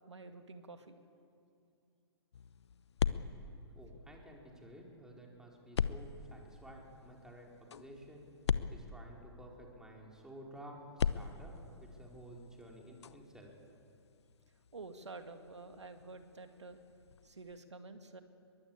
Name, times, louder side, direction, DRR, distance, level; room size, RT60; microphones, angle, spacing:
voice 1, 0.1-1.0 14.7-16.9 17.2-18.2, right 3 dB, 85° right, 7 dB, 2.2 m, -49 dB
sound 1, 2.3-4.6 5.7-9.7 10.9-17.6, left 7 dB, 70° left, 0.8 m, -41 dB
voice 2, 3.7-8.3 8.7-13.5, right 1 dB, 5° right, -1 dB, 4.3 m, -53 dB
22.5 x 21.0 x 8.7 m, 2.5 s
hypercardioid pair, 125°, 14 cm